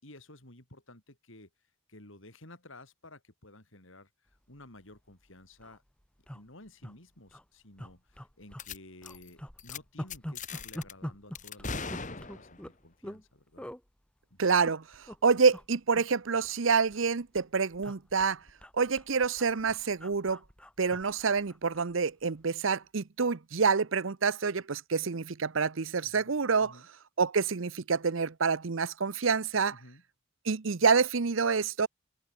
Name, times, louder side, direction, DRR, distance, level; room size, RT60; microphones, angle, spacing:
voice 1, 0.0-1.5 1.9-5.8 6.3-13.7 14.3-14.4 26.0-26.3 26.6-26.9 29.7-30.0, left 1 dB, 70° left, 5.6 m, -53 dB
sound 1, 4.9-5.0 5.3-5.4 5.5-5.8 6.3-6.9 7.3-7.4 7.8-8.7 9.0-13.2 13.6-13.8 14.4-15.2 15.5-15.7 15.9-17.1 17.4-21.9 22.2-22.4, equal, 5° left, 1.8 m, -44 dB
sound 2, 8.6-8.8 9.0-9.3 9.6-9.8 10.1-10.9 11.3-12.7, left 4 dB, 35° left, 3.0 m, -39 dB
voice 2, 14.4-14.8 15.2-18.4 18.8-20.4 20.8-26.8 27.2-29.7 30.5-31.9, right 5 dB, 70° right, 0.8 m, -27 dB
head